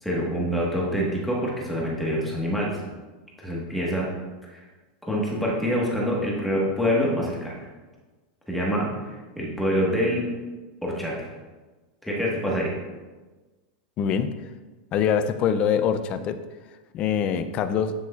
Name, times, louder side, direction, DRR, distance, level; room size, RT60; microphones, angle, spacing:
voice 1, 0.0-2.8 3.4-4.1 4.5-4.6 5.0-7.5 8.5-10.2 10.8-11.3 12.0-12.7, equal, ahead, -4 dB, 1.3 m, -26 dB
voice 2, 14.0-14.3 14.9-16.4 16.9-17.9, left 7 dB, 25° left, 11 dB, 0.4 m, -24 dB
13.0 x 6.1 x 2.3 m, 1.3 s
supercardioid pair, 175°, 5 cm